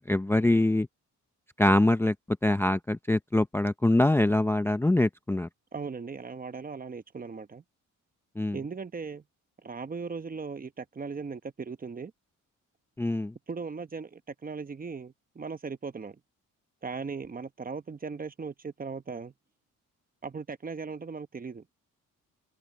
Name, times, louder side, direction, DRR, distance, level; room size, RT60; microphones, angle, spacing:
voice 1, 0.1-0.9 1.6-2.1 2.4-5.5 8.4-8.6 13.0-13.3, left 1 dB, 5° left, 0.6 m, -24 dB
voice 2, 5.7-7.6 8.5-9.2 9.6-12.1 13.5-16.2 16.8-19.3 20.2-21.6, right 5 dB, 25° right, 1.0 m, -38 dB
open air
cardioid pair, 105°, 32 cm